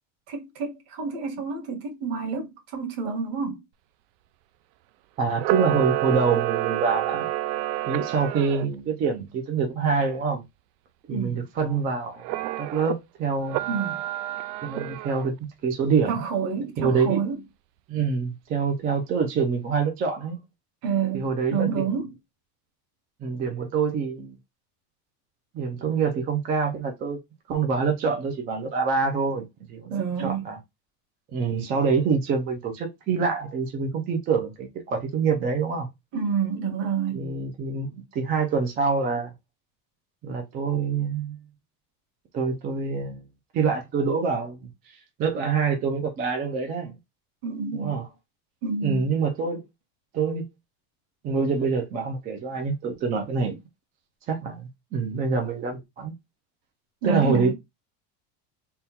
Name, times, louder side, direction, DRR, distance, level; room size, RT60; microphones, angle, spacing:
voice 1, 0.3-3.6 11.1-11.5 13.7-14.0 16.1-17.4 20.8-22.1 29.9-30.5 36.1-37.4 47.4-48.0 48.6-49.1 57.0-57.5, right 6 dB, 55° right, 1.7 m, -28 dB
voice 2, 5.2-7.3 7.9-10.4 11.1-12.2 12.6-13.7 14.6-16.3 16.8-17.2 17.9-20.4 21.1-21.8 23.2-24.3 25.5-27.2 27.5-30.0 30.2-30.6 31.3-35.9 37.1-39.3 40.2-41.4 42.3-43.2 43.5-46.9 47.7-48.0 48.8-49.6 50.1-50.5 51.2-53.6 54.3-56.1 57.0-57.5, right 5 dB, 20° right, 0.3 m, -26 dB
Camera, 5.3-8.6 12.2-13.0 13.5-15.3, right 16 dB, 80° right, 0.6 m, -29 dB
3.6 x 2.2 x 4.1 m
cardioid pair, 160°, 48 cm